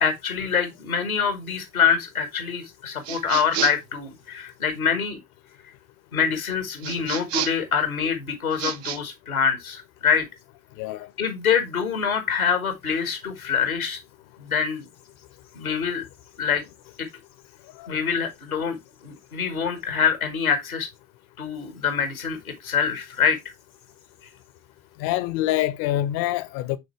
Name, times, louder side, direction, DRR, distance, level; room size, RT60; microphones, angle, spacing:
voice 1, 0.0-5.2 6.1-10.2 11.2-14.0 14.4-14.8 15.5-16.0 16.4-16.6 17.0-17.1 17.9-18.8 19.0-20.9 21.4-23.4, left 6 dB, 85° left, 1.2 m, -25 dB
sound 1, 3.0-3.9 6.8-7.7 8.5-9.0, right 11 dB, 65° right, 0.8 m, -30 dB
voice 2, 10.8-11.1 17.8-17.9 25.0-26.8, left 14 dB, 55° left, 0.8 m, -25 dB
8.6 x 4.0 x 3.0 m
figure-of-eight pair, 55°, 42 cm